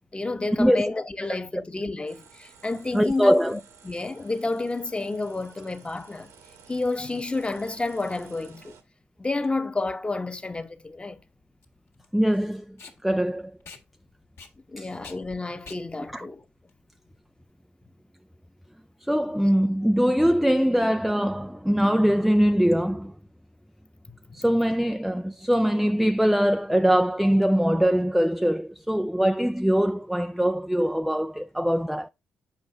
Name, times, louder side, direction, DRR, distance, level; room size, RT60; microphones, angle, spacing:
voice 1, 0.1-6.3 6.7-8.8 9.2-11.2 14.7-16.4 24.3-24.4, left 3 dB, 20° left, 1.0 m, -30 dB
sound 1, 2.1-8.8, right 6 dB, 75° right, 1.3 m, -53 dB
voice 2, 2.9-3.6 12.1-12.8 13.0-13.5 14.8-14.9 16.1-16.3 19.1-23.1 24.3-32.1, equal, ahead, 0.4 m, -22 dB
Packing tape duct tape, 10.0-17.5, left 4 dB, 60° left, 1.6 m, -50 dB
7.4 x 5.3 x 3.4 m
hypercardioid pair, 45°, 5 cm